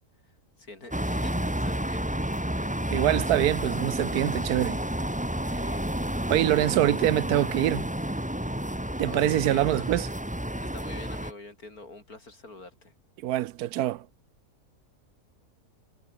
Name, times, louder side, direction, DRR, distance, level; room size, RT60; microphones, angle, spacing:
voice 1, 0.6-2.1 5.5-5.8 9.1-9.9 10.6-12.9, left 2 dB, 65° left, 5.6 m, -45 dB
sound 1, 0.9-11.3, right 1 dB, 5° right, 1.9 m, -30 dB
voice 2, 2.9-4.8 6.3-7.9 9.0-10.1 13.2-14.1, right 14 dB, 75° right, 1.1 m, -24 dB
omnidirectional pair, 1.7 m